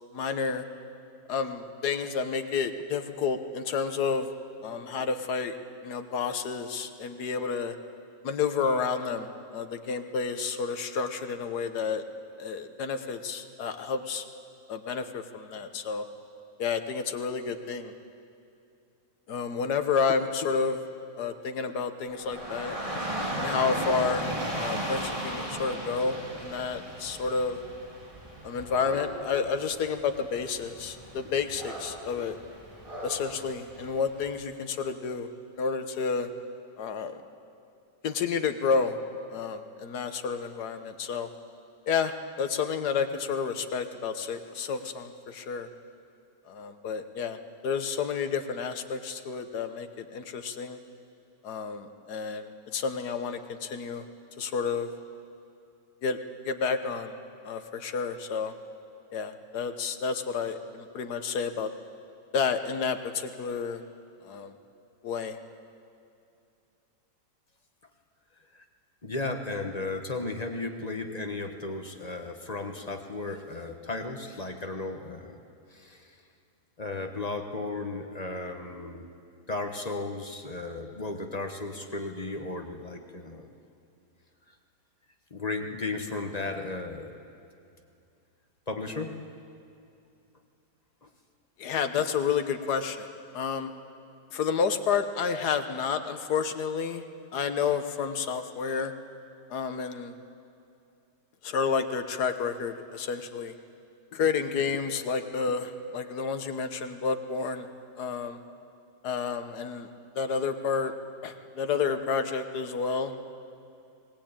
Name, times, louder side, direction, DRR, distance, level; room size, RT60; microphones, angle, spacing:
voice 1, 0.1-0.6 1.3-4.3 4.6-5.5 5.8-7.7 8.2-12.0 12.4-14.3 14.7-16.0 16.6-17.9 19.3-20.8 21.2-23.0 23.4-27.6 28.4-32.4 33.0-35.3 35.6-36.3 36.8-37.2 38.0-39.0 39.3-41.3 41.9-45.7 46.5-47.4 47.6-50.8 51.4-54.0 54.4-54.9 56.0-56.2 56.4-57.1 57.4-58.5 59.1-61.7 62.3-63.8 64.2-64.5 65.0-65.4 91.6-93.1 93.3-93.7 94.3-97.0 97.3-98.9 99.5-100.1 101.4-103.5 104.1-107.7 108.0-108.4 109.0-109.9 110.1-110.9 111.2-113.3, left 5 dB, 65° left, 8 dB, 1.6 m, -30 dB
Dog / Rain, 22.1-34.3, right 1 dB, 20° right, 3.5 m, -36 dB
voice 2, 69.0-75.4 75.7-76.1 76.8-79.1 79.5-83.5 85.3-87.2 88.7-89.2, left 3 dB, 25° left, 4 dB, 1.1 m, -35 dB
21.0 x 18.5 x 8.9 m, 2.5 s
omnidirectional pair, 1.9 m